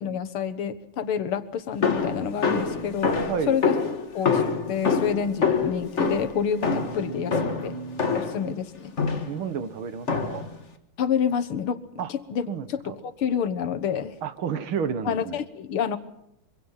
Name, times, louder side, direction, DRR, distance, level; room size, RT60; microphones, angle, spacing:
voice 1, 0.0-3.7 4.1-7.3 7.6-7.7 8.1-9.0 11.0-14.2 15.1-16.0, left 8 dB, 90° left, 10 dB, 2.2 m, -28 dB
sound 1, 1.8-8.5 9.0-9.4 10.1-10.6, left 5 dB, 35° left, 2.0 m, -26 dB
voice 2, 3.2-3.6 6.8-8.6 9.3-10.4 12.0-12.1 12.5-12.7 14.2-15.4, right 6 dB, 75° right, 12 dB, 2.2 m, -32 dB
24.5 x 24.5 x 5.8 m, 0.80 s
omnidirectional pair, 2.3 m